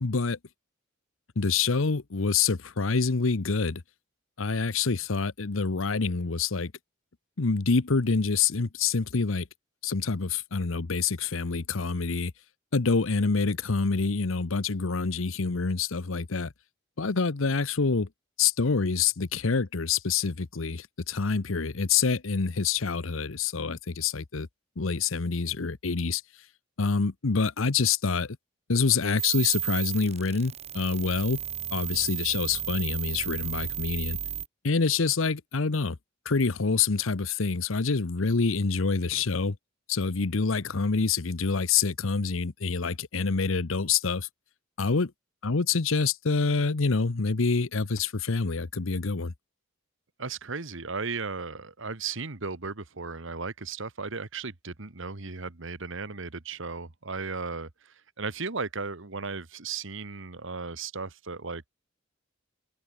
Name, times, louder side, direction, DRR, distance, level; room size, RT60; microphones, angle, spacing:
voice 1, 0.0-0.4 1.4-3.8 4.4-6.7 7.4-9.5 9.8-12.3 12.7-16.5 17.0-18.1 18.4-24.5 24.8-26.2 26.8-28.4 28.7-31.4 31.7-34.2 34.6-36.0 36.2-39.6 39.9-44.3 44.8-45.1 45.4-49.3, left 4 dB, 75° left, 0.9 m, -26 dB
sound 1, 29.2-34.5, right 10 dB, 35° right, 3.5 m, -33 dB
voice 2, 50.2-61.7, right 4 dB, 65° right, 1.6 m, -36 dB
head